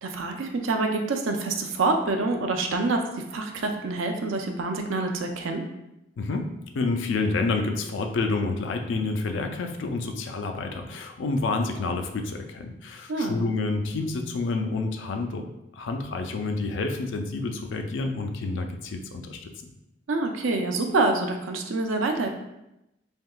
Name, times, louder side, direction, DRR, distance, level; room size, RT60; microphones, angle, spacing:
voice 1, 0.0-5.6 13.1-13.4 20.1-22.3, right 3 dB, 90° right, 4 dB, 0.4 m, -26 dB
voice 2, 6.2-15.5 15.7-19.5, left 3 dB, 75° left, 5 dB, 0.4 m, -29 dB
3.5 x 2.7 x 2.3 m, 0.88 s
head